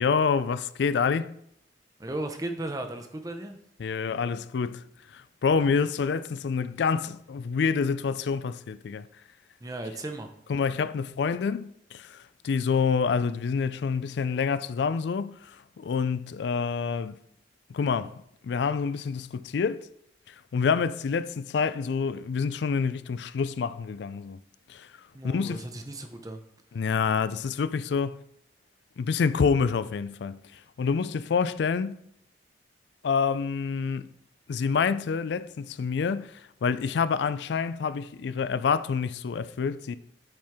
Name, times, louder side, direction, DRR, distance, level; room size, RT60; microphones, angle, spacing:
voice 1, 0.0-1.3 3.8-4.8 5.1-9.1 10.5-17.2 17.7-19.9 20.3-24.4 24.7-24.9 25.2-25.6 26.7-28.2 29.0-32.0 33.0-34.1 34.5-40.0, left 5 dB, 70° left, 0.4 m, -27 dB
voice 2, 2.0-3.6 9.6-10.3 25.1-26.4, right 1 dB, 20° right, 0.6 m, -35 dB
7.6 x 4.4 x 3.5 m
head